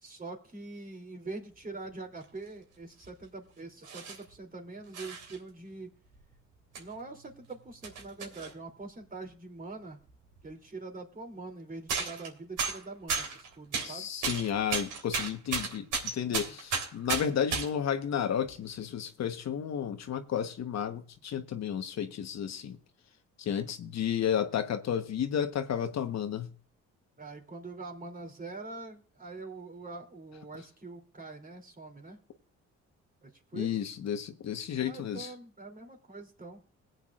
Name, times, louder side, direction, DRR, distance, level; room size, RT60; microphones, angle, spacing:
voice 1, 0.0-5.9 6.8-10.0 10.4-14.1 16.5-16.6 23.6-23.7 27.2-32.2 33.2-33.8 34.8-36.6, right 3 dB, 30° right, 3.0 m, -44 dB
sound 1, 2.2-2.3 3.0-3.2 3.8-4.3 4.9-5.4 6.1-6.2 6.7-6.8 7.2-8.5 10.1-10.2 10.4-10.5 11.9-12.3 12.6-13.9 14.2-17.7 18.5-18.7, right 5 dB, 80° right, 3.6 m, -34 dB
voice 2, 13.8-22.8 23.4-26.5 33.5-35.3, left 8 dB, 60° left, 1.2 m, -32 dB
21.5 x 8.3 x 2.5 m
cardioid pair, 90°, 30 cm